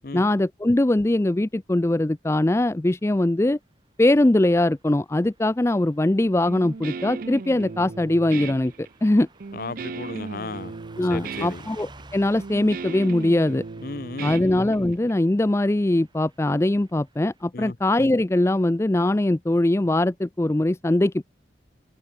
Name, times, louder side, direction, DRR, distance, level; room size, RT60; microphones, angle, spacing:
voice 1, 0.1-3.6 4.0-8.7 9.0-9.3 11.0-13.6 14.2-21.2, left 1 dB, 15° left, 0.4 m, -21 dB
Car passing by / Truck, 4.5-17.5, right 2 dB, 25° right, 2.7 m, -52 dB
Guitar, 6.5-15.1, right 4 dB, 50° right, 0.5 m, -36 dB
voice 2, 9.5-10.7 11.1-11.6 13.8-14.4 17.5-17.8, left 3 dB, 50° left, 0.8 m, -34 dB
head